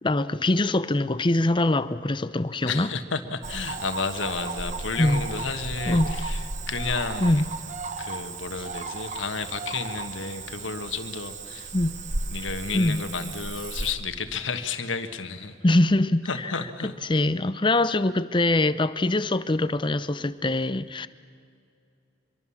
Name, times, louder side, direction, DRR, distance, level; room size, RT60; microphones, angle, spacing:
voice 1, 0.0-2.9 5.0-5.2 5.9-6.2 7.2-7.5 11.7-12.0 12.7-13.0 15.6-16.3 17.0-21.1, left 2 dB, 25° left, 0.6 m, -23 dB
voice 2, 2.6-7.5 8.0-11.7 12.3-15.6 16.2-16.9, left 4 dB, 85° left, 1.4 m, -32 dB
Cricket / Frog, 3.4-13.9, right 3 dB, 40° right, 1.1 m, -34 dB
25.0 x 22.5 x 7.2 m
head